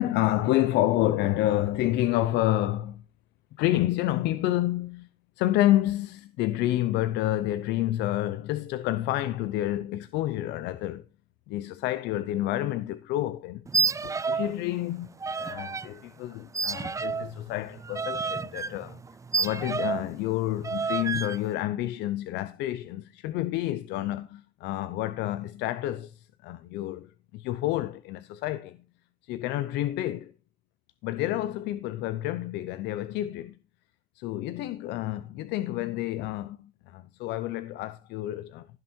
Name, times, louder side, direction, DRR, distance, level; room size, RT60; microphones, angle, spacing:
voice 1, 0.0-3.0 3.6-5.1 5.4-11.0 11.5-13.7 14.0-19.0 19.4-28.8 29.2-30.3 31.0-33.6 34.2-38.7, left 14 dB, 90° left, 0.7 m, -29 dB
sound 1, 13.7-14.6 14.8-15.9 16.5-20.1 20.6-21.4, right 5 dB, 20° right, 0.5 m, -30 dB
16.0 x 6.6 x 4.4 m
cardioid pair, 110°, 17 cm